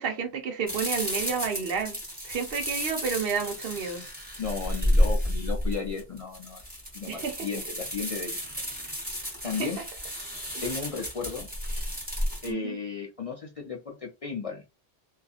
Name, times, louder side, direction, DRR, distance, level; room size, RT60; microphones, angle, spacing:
voice 1, 0.0-2.0 2.2-4.0 7.1-7.5 9.6-9.7 12.5-12.8, right 6 dB, 65° right, 0.8 m, -30 dB
sound 1, 0.7-12.5, equal, 10° right, 1.1 m, -31 dB
voice 2, 4.4-6.6 6.9-8.4 9.4-9.8 10.6-11.5 12.4-14.6, left 5 dB, 50° left, 0.4 m, -34 dB
2.6 x 2.3 x 2.4 m
omnidirectional pair, 1.0 m